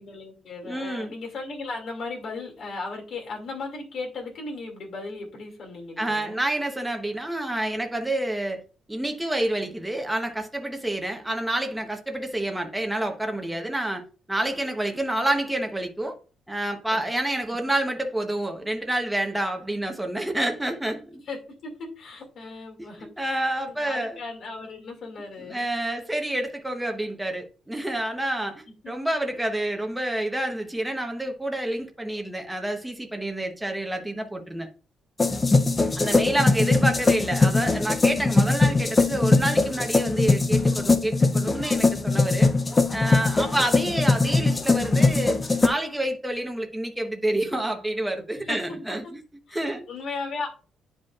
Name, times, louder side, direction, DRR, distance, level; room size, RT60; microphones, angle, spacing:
voice 1, 0.0-6.4 16.9-17.1 17.5-17.6 21.3-21.4 21.6-23.3 23.6-25.6 28.8-28.9 29.6-29.8 36.0-36.7 43.4-43.6 48.3-48.6 48.9-49.1 49.5-50.5, left 3 dB, 50° left, 2.2 m, -37 dB
voice 2, 0.6-1.1 6.0-8.6 8.9-14.0 14.3-16.2 16.5-21.2 22.8-24.2 25.4-34.7 36.0-42.5 42.9-49.2 49.5-49.9, right 1 dB, 5° right, 0.9 m, -28 dB
sound 1, 35.2-45.7, left 3 dB, 20° left, 0.5 m, -21 dB
10.0 x 5.1 x 2.4 m
cardioid pair, 175°, 0 cm